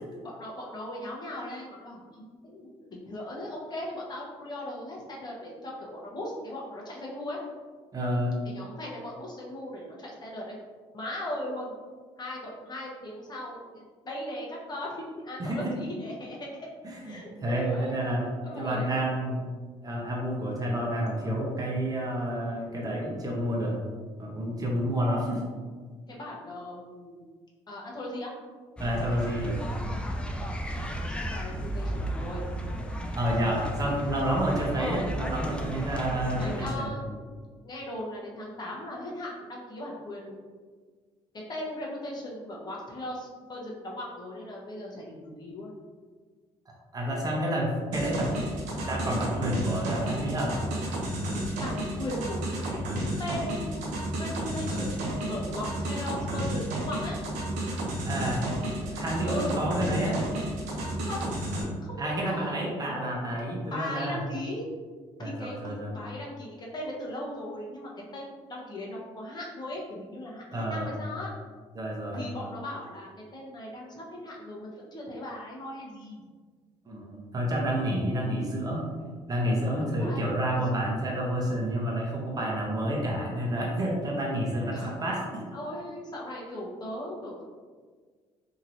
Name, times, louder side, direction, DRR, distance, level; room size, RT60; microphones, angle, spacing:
voice 1, 0.2-7.4 8.4-10.5 10.9-11.7 12.2-16.5 17.0-18.0 18.4-19.0 26.1-27.2 27.7-28.3 30.6-32.5 33.3-33.4 36.4-37.1 37.6-40.4 41.5-45.7 51.6-52.4 52.6-52.8 53.2-57.2 59.2-59.6 61.0-62.5 62.9-63.0 63.7-64.6 65.2-71.3 72.1-76.2 79.6-80.3 84.7-84.9 85.5-87.4, left 1 dB, 35° left, -3 dB, 0.9 m, -38 dB
voice 2, 7.9-8.3 15.4-15.7 16.8-18.2 18.5-19.4 19.8-23.8 24.2-25.4 28.8-29.6 33.2-36.9 46.9-48.4 48.8-50.5 58.1-58.5 58.9-60.2 62.0-64.2 65.2-65.9 70.5-70.9 71.7-72.3 76.8-78.8 79.3-85.5, right 1 dB, 30° right, -2 dB, 0.9 m, -29 dB
sound 1, 28.8-36.8, equal, 10° left, 0.3 m, -34 dB
sound 2, 47.9-61.6, right 1 dB, 85° right, 0.7 m, -32 dB
2.9 x 2.8 x 2.6 m, 1.5 s
cardioid pair, 80°, 12 cm